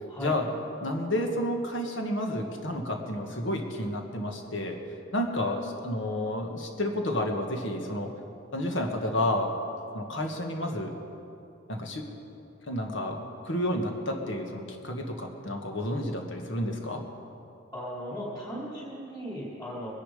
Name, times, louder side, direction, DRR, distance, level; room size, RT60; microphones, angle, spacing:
voice 1, 0.2-0.5 0.8-4.8 5.1-8.1 8.5-9.5 9.9-11.0 11.7-12.1 12.7-13.2 13.4-17.0, left 1 dB, 65° left, 3 dB, 1.7 m, -30 dB
voice 2, 17.7-19.9, equal, 15° left, -10 dB, 3.5 m, -37 dB
22.5 x 10.5 x 5.1 m, 2.7 s
head